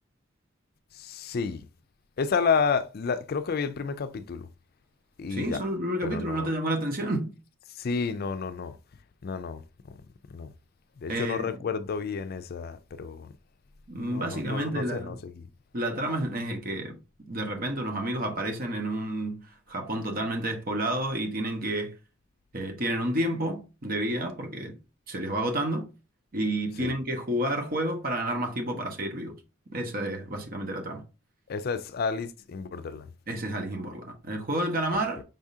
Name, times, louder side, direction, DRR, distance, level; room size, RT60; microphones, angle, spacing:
voice 1, 0.9-1.6 2.2-4.5 5.2-5.6 6.0-6.5 7.8-8.8 9.2-9.6 10.3-10.5 11.0-13.3 14.0-15.5 26.8-27.0 31.5-33.1, left 5 dB, 50° left, 0.4 m, -30 dB
voice 2, 5.3-7.3 11.1-11.6 13.9-15.2 15.7-16.9 17.3-22.0 22.5-24.7 25.1-25.9 26.3-29.3 29.7-31.0 33.3-35.2, right 1 dB, 45° right, 1.1 m, -30 dB
5.4 x 3.6 x 2.7 m
head